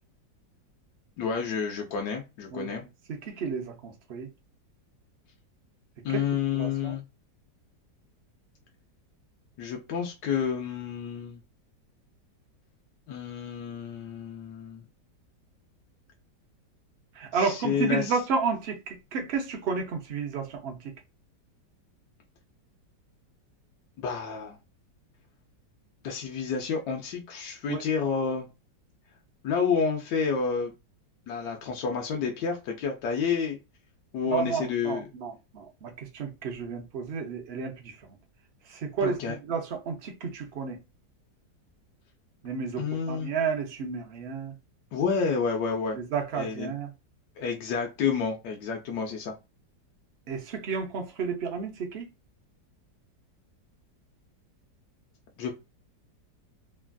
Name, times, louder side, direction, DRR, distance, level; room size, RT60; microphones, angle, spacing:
voice 1, 1.2-2.8 6.0-7.0 9.6-11.4 13.1-14.9 17.3-18.2 24.0-24.6 26.0-28.5 29.4-30.7 31.3-33.6 34.1-35.0 39.0-39.4 42.8-43.3 44.9-46.0 46.3-46.7 47.4-49.3 55.4-55.5, left 6 dB, 70° left, 1.2 m, -29 dB
voice 2, 3.1-4.3 6.1-6.2 6.5-7.0 17.2-21.0 27.7-27.8 34.3-37.9 38.7-40.8 42.4-44.5 45.9-46.9 50.3-52.1, right 5 dB, 60° right, 0.6 m, -32 dB
3.3 x 2.4 x 2.2 m
omnidirectional pair, 1.9 m